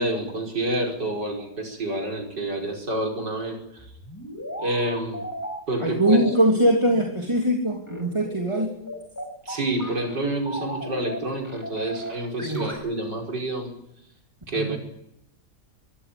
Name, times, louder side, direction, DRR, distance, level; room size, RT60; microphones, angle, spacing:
voice 1, 0.0-3.8 4.6-5.2 5.7-6.2 9.5-13.7 14.5-14.8, right 1 dB, 80° right, 1 dB, 5.8 m, -28 dB
sound 1, 3.8-5.6 6.1-7.0 7.9-10.2 10.5-11.2 11.4-12.7, equal, 10° left, 5.8 m, -36 dB
voice 2, 5.8-8.8 12.4-12.8 14.5-14.8, right 1 dB, 15° right, 1 dB, 3.1 m, -22 dB
25.5 x 16.5 x 8.7 m, 0.80 s
omnidirectional pair, 1.8 m